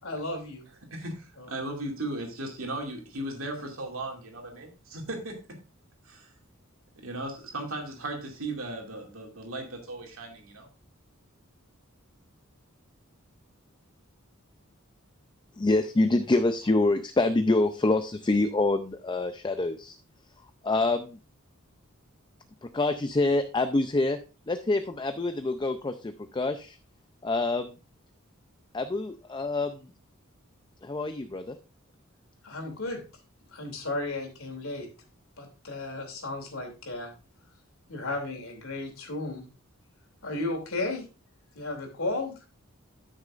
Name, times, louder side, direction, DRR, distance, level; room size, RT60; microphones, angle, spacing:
voice 1, 0.0-0.7 1.4-1.5 32.4-33.0 33.5-34.9 35.4-37.1 37.9-39.5 40.2-41.1 41.5-42.4, left 2 dB, 75° left, 3 dB, 2.8 m, -34 dB
voice 2, 0.9-5.4 6.0-6.3 7.0-10.7, right 2 dB, 75° right, 2 dB, 2.4 m, -36 dB
voice 3, 15.5-20.0 20.6-21.2 22.6-24.2 24.5-26.8 27.2-27.8 28.7-29.9 30.8-31.6, left 2 dB, 20° left, 9 dB, 0.4 m, -26 dB
13.0 x 6.4 x 2.5 m, 0.32 s
head